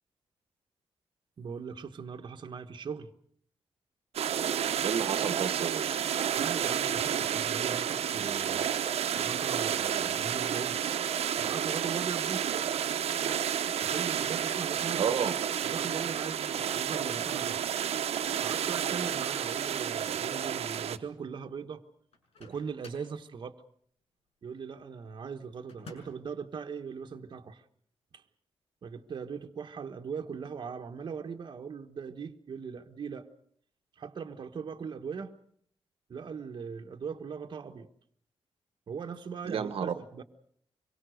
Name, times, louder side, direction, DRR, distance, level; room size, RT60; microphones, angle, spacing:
voice 1, 1.4-3.1 6.3-8.6 9.2-10.8 11.4-12.5 13.8-15.1 15.6-17.6 18.4-21.8 22.4-23.6 24.4-27.6 28.1-28.2 28.8-33.3 34.0-35.3 36.1-37.9 38.9-40.2, right 6 dB, 50° right, 1.3 m, -40 dB
sound 1, 4.1-21.0, right 9 dB, 90° right, 1.1 m, -31 dB
voice 2, 4.8-6.0 15.0-15.4 39.4-39.9, right 7 dB, 65° right, 1.2 m, -31 dB
Microwave oven, 22.1-23.2 25.7-26.3, left 3 dB, 90° left, 6.0 m, -51 dB
25.5 x 23.0 x 6.5 m
wide cardioid pair, 165°, 10 cm